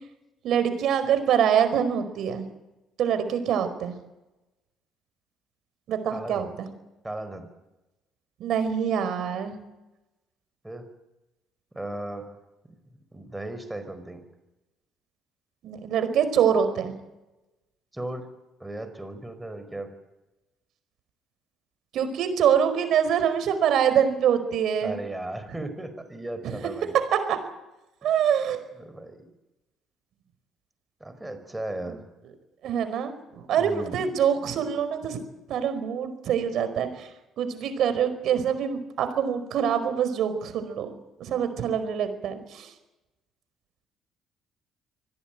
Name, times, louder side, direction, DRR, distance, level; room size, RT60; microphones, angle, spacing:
voice 1, 0.4-2.4 3.0-4.0 5.9-6.7 8.4-9.6 15.6-17.0 21.9-25.0 27.1-27.4 28.0-28.6 32.6-35.2 35.5-37.1 37.4-40.9 41.2-42.7, right 8 dB, 65° right, 9 dB, 4.8 m, -25 dB
voice 2, 6.1-6.5 7.0-7.5 10.6-10.8 11.7-12.3 12.6-12.7 13.1-14.2 17.9-18.3 18.6-19.9 24.8-26.9 28.7-29.2 31.0-32.1 33.5-34.0, right 1 dB, 10° right, 9 dB, 4.8 m, -36 dB
25.0 x 17.5 x 9.1 m, 0.98 s
cardioid pair, 95°, 0 cm